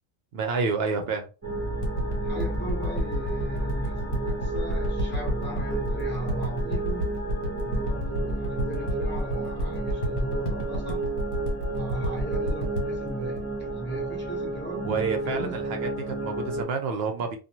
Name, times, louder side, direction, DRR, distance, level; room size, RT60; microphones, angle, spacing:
voice 1, 0.3-1.3 14.8-17.4, right 5 dB, 60° right, 0.7 m, -29 dB
sound 1, 1.4-16.6, right 2 dB, 15° right, 0.6 m, -32 dB
sound 2, 1.8-14.6 15.2-15.3, equal, 65° left, 1.3 m, -30 dB
voice 2, 2.2-7.2 7.5-11.1 11.7-14.9 15.2-15.6, right 2 dB, 10° left, 0.9 m, -36 dB
2.6 x 2.3 x 2.9 m
omnidirectional pair, 1.4 m